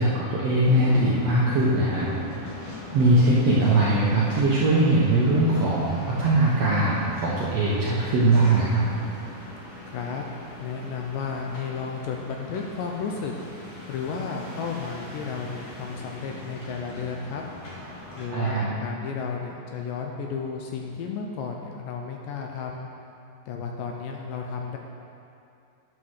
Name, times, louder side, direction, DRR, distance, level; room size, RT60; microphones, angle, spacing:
voice 1, 0.0-2.1 2.9-8.8 18.3-18.7, right 2 dB, 65° right, -7 dB, 1.6 m, -21 dB
sound 1, 0.6-18.3, left 2 dB, 55° left, 2.3 m, -41 dB
voice 2, 9.9-10.3 10.6-13.3 13.9-17.4 18.2-22.9 23.5-24.8, left 5 dB, 75° left, 1 dB, 2.1 m, -33 dB
11.5 x 4.7 x 6.4 m, 2.6 s
omnidirectional pair, 4.3 m